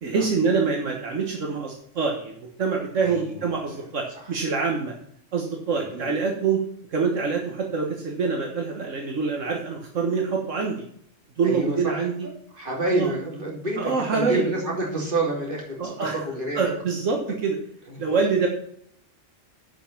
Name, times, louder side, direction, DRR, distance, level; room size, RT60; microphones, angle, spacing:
voice 1, 0.0-4.9 5.3-6.6 6.9-10.8 11.4-12.3 12.9-13.1 13.8-14.5 15.8-16.2 16.5-17.6 18.0-18.5, right 5 dB, 80° right, 1 dB, 1.6 m, -25 dB
voice 2, 3.0-3.4 4.2-4.3 5.8-6.1 11.4-12.0 12.6-16.7 17.9-18.0, right 2 dB, 45° right, -2 dB, 3.0 m, -28 dB
11.5 x 5.3 x 5.9 m, 0.66 s
omnidirectional pair, 1.3 m